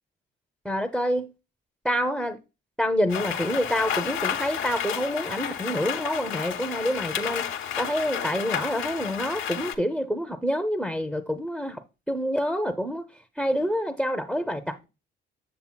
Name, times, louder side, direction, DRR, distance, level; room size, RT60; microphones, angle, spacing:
voice 1, 0.6-1.3 1.8-2.4 2.8-7.5 7.8-13.0 13.4-14.9, equal, ahead, 0.6 m, -27 dB
Rain, 3.1-9.7, left 9 dB, 80° left, 0.8 m, -31 dB
7.1 x 6.8 x 2.2 m
cardioid pair, 90°, 20 cm